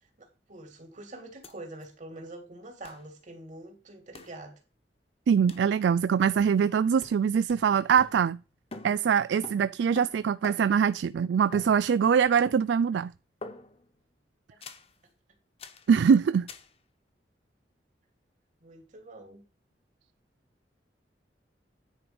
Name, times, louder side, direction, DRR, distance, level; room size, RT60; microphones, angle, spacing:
voice 1, 0.2-4.6 18.6-19.4, right 2 dB, 45° right, 2.6 m, -45 dB
sound 1, 1.4-1.5 1.8-1.9 2.8-3.1 4.1-4.4 5.5-5.7 6.4-6.7 7.0-8.5 8.7-10.9 11.5-12.2 12.5-12.9 13.4-13.9 14.6-14.9 15.6-15.9 16.5-16.7, left 2 dB, 35° left, 1.1 m, -46 dB
voice 2, 5.3-8.4 8.8-13.1 15.9-16.5, right 7 dB, 85° right, 0.3 m, -23 dB
10.0 x 5.0 x 5.2 m
head